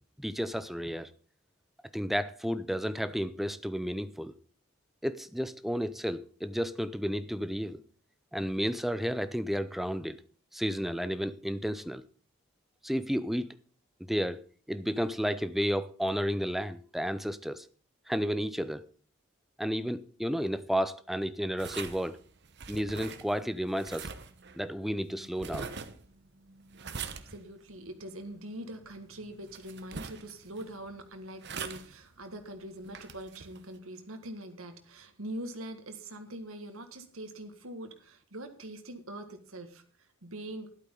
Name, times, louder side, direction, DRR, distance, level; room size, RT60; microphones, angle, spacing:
voice 1, 0.2-1.1 1.9-4.3 5.0-7.8 8.3-10.2 10.5-12.0 12.8-13.5 14.0-14.4 14.7-17.7 18.1-18.8 19.6-22.2 22.7-24.1 24.6-25.7, equal, ahead, 0.5 m, -32 dB
sound 1, 21.6-33.8, right 5 dB, 55° right, 1.0 m, -44 dB
voice 2, 27.0-39.8 40.2-40.7, right 1 dB, 80° right, 1.8 m, -43 dB
13.0 x 11.5 x 3.8 m
head